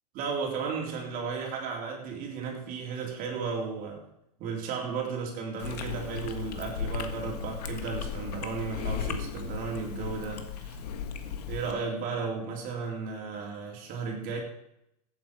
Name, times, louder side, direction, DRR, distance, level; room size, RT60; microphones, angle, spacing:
voice 1, 0.1-4.1 4.4-10.8 11.2-14.4, right 5 dB, 45° right, 0 dB, 3.7 m, -34 dB
Chewing mastication, 5.6-11.7, left 7 dB, 80° left, 1.5 m, -36 dB
15.5 x 8.7 x 4.9 m, 0.81 s
hypercardioid pair, 115°, 20 cm